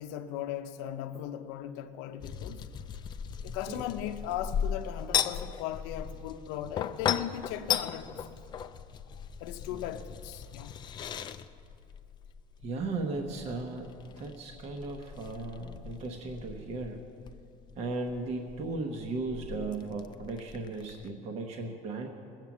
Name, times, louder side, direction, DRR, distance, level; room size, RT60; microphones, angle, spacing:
voice 1, 0.0-2.6 3.4-8.3 9.4-10.8, left 11 dB, 80° left, 0.6 m, -38 dB
sound 1, 2.2-21.1, left 8 dB, 25° left, 0.4 m, -37 dB
voice 2, 3.5-3.9 9.7-9.8 12.6-13.9 14.2-17.0 17.8-22.1, right 3 dB, 35° right, 1.0 m, -36 dB
20.5 x 7.5 x 7.2 m
cardioid pair, 165°, 18 cm